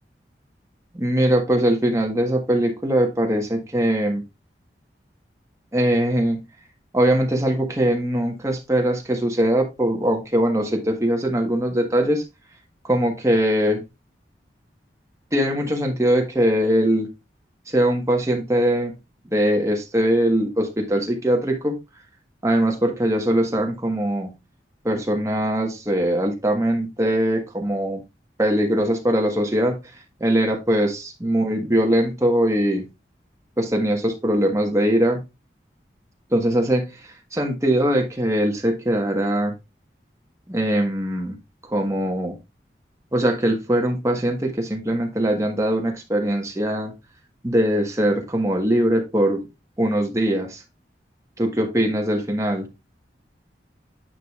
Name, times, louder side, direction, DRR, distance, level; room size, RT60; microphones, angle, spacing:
voice 1, 0.9-4.2 5.7-6.4 6.9-12.2 12.8-13.8 15.3-17.1 17.7-18.9 19.3-21.8 22.4-24.3 24.8-28.0 28.4-29.8 30.2-32.9 33.6-35.2 36.3-39.5 40.5-41.4 41.7-42.4 43.1-46.9 47.4-49.4 49.8-50.6 51.4-52.7, right 1 dB, 15° right, 1.3 m, -21 dB
10.0 x 5.0 x 2.4 m
head